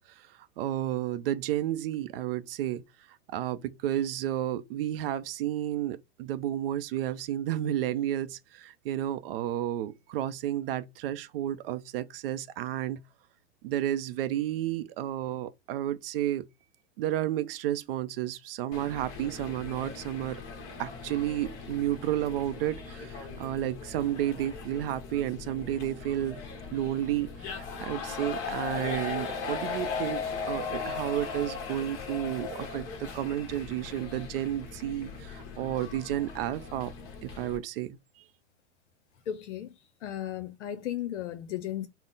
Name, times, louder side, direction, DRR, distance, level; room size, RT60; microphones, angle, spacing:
voice 1, 0.1-13.0 13.6-16.5 17.0-20.4 20.8-26.4 26.7-36.9 37.2-38.2, right 12 dB, 55° right, 0.4 m, -32 dB
sound 1, 18.7-37.6, left 5 dB, 35° left, 1.0 m, -38 dB
voice 2, 39.3-41.9, left 11 dB, 85° left, 0.6 m, -35 dB
3.8 x 2.0 x 3.9 m
hypercardioid pair, 135°, 35 cm